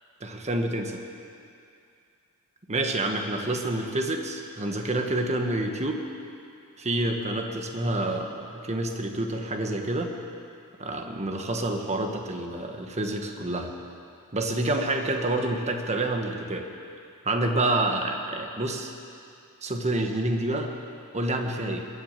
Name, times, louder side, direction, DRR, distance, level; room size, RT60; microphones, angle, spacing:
voice 1, 0.2-1.0 2.7-6.0 6.8-10.1 10.8-13.7 14.3-16.7 17.2-18.9 19.6-20.7 21.1-21.8, right 2 dB, 30° right, 4 dB, 1.3 m, -28 dB
22.0 x 8.4 x 7.4 m, 2.5 s
head